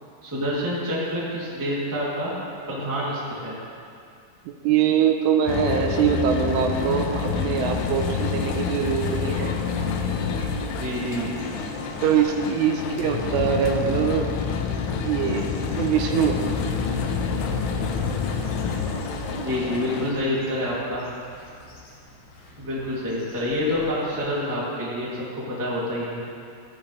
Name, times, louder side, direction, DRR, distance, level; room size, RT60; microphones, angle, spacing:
voice 1, 0.2-2.3 2.7-3.5 10.7-11.3 19.3-21.0 22.6-26.2, left 1 dB, 10° right, -8 dB, 1.3 m, -27 dB
voice 2, 4.5-9.5 10.4-10.5 12.0-14.3 15.0-16.5, right 8 dB, 85° right, 3 dB, 3.2 m, -23 dB
sound 1, 5.5-20.1, left 5 dB, 85° left, 2.2 m, -28 dB
sound 2, 7.1-24.4, left 1 dB, 55° left, 2.7 m, -45 dB
15.5 x 13.0 x 3.4 m, 2.4 s
omnidirectional pair, 5.7 m